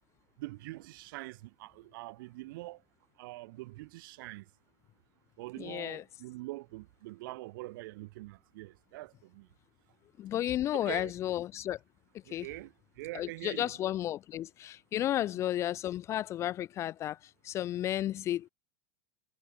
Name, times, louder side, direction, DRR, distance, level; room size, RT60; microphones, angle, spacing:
voice 1, 0.4-2.8 3.2-4.5 5.4-9.5 10.7-11.1 12.3-13.7 15.2-15.3, right 20 dB, 65° right, 0.6 m, -44 dB
voice 2, 5.6-6.0 10.2-11.8 12.3-12.5 13.1-17.2 17.4-18.5, left 12 dB, 25° left, 0.4 m, -33 dB
supercardioid pair, 160°, 12 cm